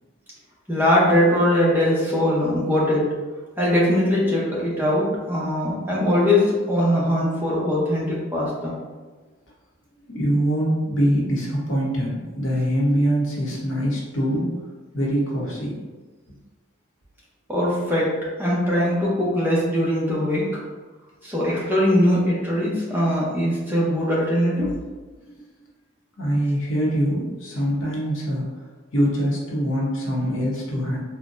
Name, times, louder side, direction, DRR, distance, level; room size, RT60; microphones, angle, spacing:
voice 1, 0.7-3.2 3.6-8.7 17.5-20.6 21.2-24.7, left 1 dB, 10° right, -6 dB, 0.7 m, -21 dB
voice 2, 10.1-14.6 14.9-15.8 25.2-25.4 26.2-28.6 28.9-31.0, equal, 70° left, -3 dB, 0.9 m, -23 dB
3.9 x 2.1 x 2.5 m, 1.3 s
head